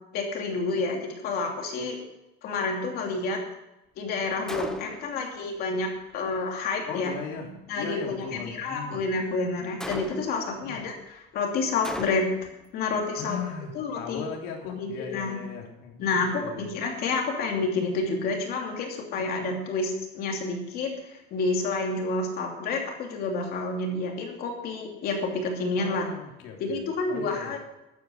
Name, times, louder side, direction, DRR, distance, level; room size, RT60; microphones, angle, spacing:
voice 1, 0.1-2.0 2.4-3.4 4.0-12.2 12.7-13.4 13.7-14.2 14.8-15.4 16.0-26.0 26.6-27.6, left 3 dB, 45° left, 1 dB, 2.9 m, -29 dB
Gunshot gunfire, 4.5-5.2 9.8-10.5 11.8-12.5, left 1 dB, 5° left, 0.7 m, -36 dB
voice 2, 6.8-7.5 7.7-9.0 10.6-10.8 13.2-16.7 25.7-27.6, left 6 dB, 70° left, 1 dB, 3.3 m, -38 dB
13.5 x 9.5 x 6.4 m, 0.94 s
cardioid pair, 175°, 21 cm